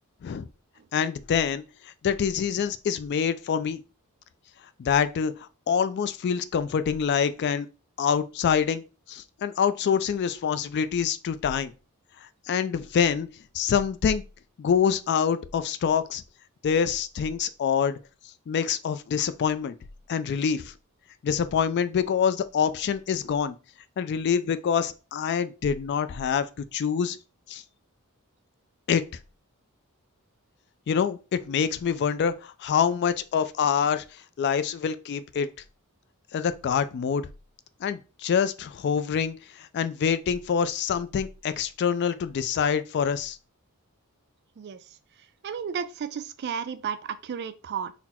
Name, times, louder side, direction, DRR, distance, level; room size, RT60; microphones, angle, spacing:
voice 1, 0.9-3.8 4.8-7.7 8.0-8.8 9.1-11.7 12.5-13.3 13.5-14.2 14.6-16.2 16.6-18.0 18.5-19.8 20.1-20.7 21.2-23.6 24.0-27.2 27.5-27.6 28.9-29.0 30.9-35.5 36.3-37.3 37.8-43.4, left 7 dB, 50° left, 0.3 m, -26 dB
voice 2, 45.4-47.9, right 7 dB, 50° right, 0.3 m, -33 dB
4.0 x 2.0 x 4.2 m
head